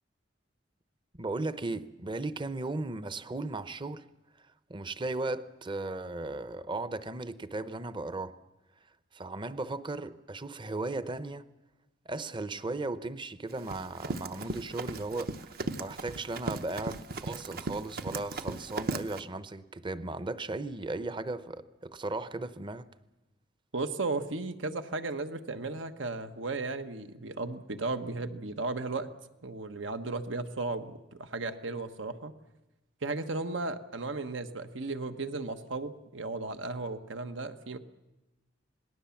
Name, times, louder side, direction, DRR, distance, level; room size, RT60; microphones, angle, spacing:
voice 1, 1.1-4.1 4.7-8.4 9.1-11.5 12.1-22.9, right 2 dB, 25° right, 0.7 m, -36 dB
Run, 13.5-19.2, right 3 dB, 50° right, 0.9 m, -37 dB
voice 2, 23.7-29.1 29.4-32.3 33.0-37.8, right 3 dB, 85° right, 1.3 m, -35 dB
27.0 x 19.0 x 7.2 m
head